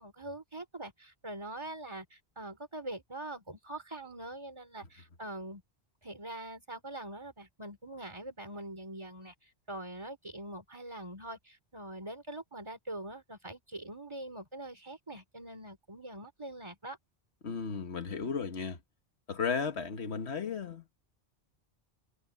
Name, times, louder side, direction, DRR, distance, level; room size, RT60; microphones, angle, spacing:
voice 1, 0.0-5.6 6.0-17.0, right 1 dB, 25° right, 3.2 m, -43 dB
voice 2, 17.4-18.8 19.3-21.0, left 5 dB, 85° left, 1.7 m, -35 dB
omnidirectional pair, 1.1 m